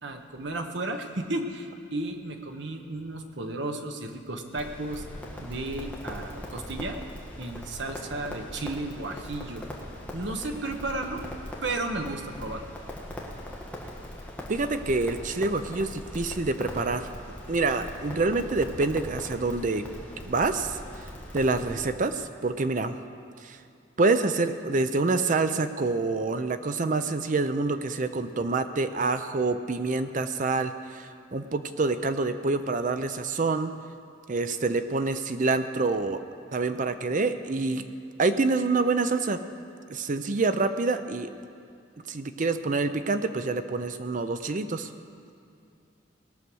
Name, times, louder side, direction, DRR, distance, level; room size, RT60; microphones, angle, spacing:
voice 1, 0.0-5.0 5.4-7.0 7.4-9.7 10.1-11.2 11.6-12.6, right 2 dB, 60° right, 5 dB, 1.1 m, -33 dB
Crackle, 4.5-21.8, left 1 dB, 5° left, 1.4 m, -40 dB
voice 2, 14.5-17.1 17.5-19.8 20.2-20.8 21.3-23.0 23.4-23.6 24.0-33.7 34.3-36.2 36.5-37.9 38.2-39.4 39.9-41.3 42.1-44.9, right 3 dB, 40° right, 10 dB, 0.5 m, -27 dB
19.0 x 6.4 x 6.2 m, 2.5 s
head